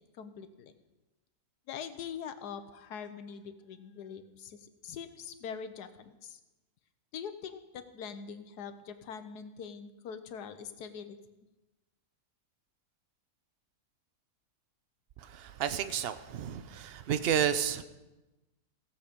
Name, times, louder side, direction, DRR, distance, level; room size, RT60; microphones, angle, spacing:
voice 1, 0.2-0.7 1.7-6.4 7.1-11.2, left 7 dB, 85° left, 10 dB, 1.4 m, -43 dB
voice 2, 15.2-17.8, right 9 dB, 60° right, 11 dB, 0.6 m, -31 dB
16.5 x 7.4 x 5.1 m, 1.1 s
omnidirectional pair, 1.7 m